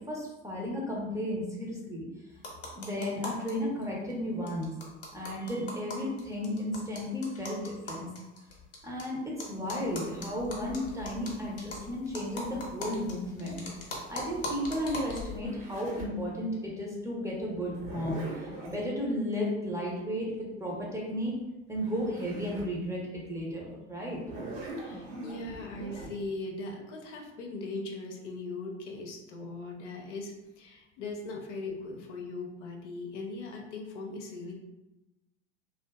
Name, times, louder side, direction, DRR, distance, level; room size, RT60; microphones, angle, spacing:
voice 1, 0.1-2.0 2.8-4.7 5.1-8.1 8.8-13.7 14.1-21.4 21.7-24.2, equal, 10° right, -3 dB, 0.6 m, -34 dB
sound 1, 2.4-3.5 3.8-3.9 4.1-4.2 4.5-9.0 9.4-15.4, left 2 dB, 40° left, 0.9 m, -41 dB
Zipper (clothing), 13.5-16.2 17.6-18.8 21.4-21.5 21.7-22.7 23.2-23.3 24.1-26.1, right 2 dB, 65° right, 1.1 m, -42 dB
voice 2, 24.8-34.5, left 3 dB, 75° left, 1 dB, 0.6 m, -39 dB
2.5 x 2.3 x 2.2 m, 1.0 s
hypercardioid pair, 80°, 35 cm